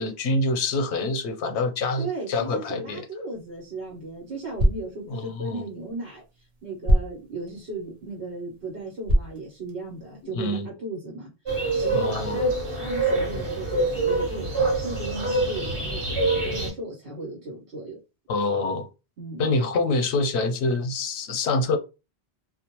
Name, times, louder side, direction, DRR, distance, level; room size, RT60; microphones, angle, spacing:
voice 1, 0.0-3.0 5.1-5.6 10.4-10.7 11.9-12.4 18.3-18.9 19.4-21.8, left 2 dB, 90° left, 0.9 m, -26 dB
voice 2, 2.0-11.3 11.7-18.0 19.2-19.5, right 2 dB, 75° right, 1.2 m, -36 dB
sound 1, 3.3-10.2, right 1 dB, 45° right, 0.5 m, -29 dB
sound 2, 11.5-16.7, right 2 dB, 30° right, 1.2 m, -25 dB
2.4 x 2.1 x 2.9 m
omnidirectional pair, 1.1 m